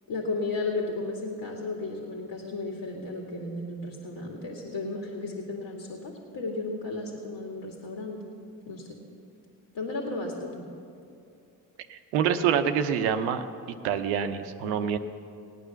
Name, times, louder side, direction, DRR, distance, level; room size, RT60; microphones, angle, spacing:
voice 1, 0.1-8.2 8.7-9.0 9.7-10.6, left 3 dB, 65° left, 0 dB, 2.2 m, -34 dB
voice 2, 11.9-13.4 13.8-15.0, right 8 dB, 90° right, 8 dB, 0.8 m, -26 dB
18.0 x 9.4 x 7.0 m, 2.5 s
hypercardioid pair, 50°, 41 cm